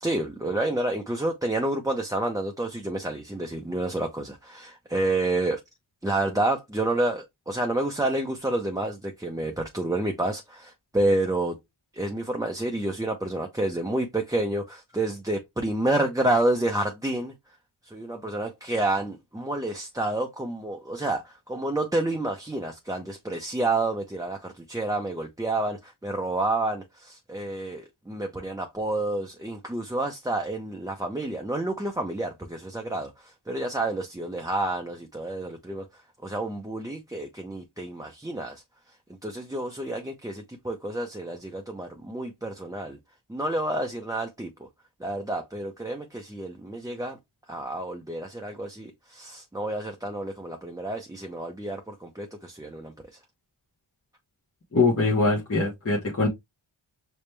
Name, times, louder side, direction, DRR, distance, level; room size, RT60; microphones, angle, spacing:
voice 1, 0.0-5.6 6.0-11.6 11.9-17.3 17.9-35.9 36.2-38.6 39.2-43.0 43.3-44.7 45.0-47.2 47.5-52.9, right 2 dB, 5° right, 0.6 m, -29 dB
voice 2, 54.7-56.3, left 3 dB, 30° left, 1.0 m, -22 dB
5.0 x 2.1 x 3.2 m
cardioid pair, 50°, 49 cm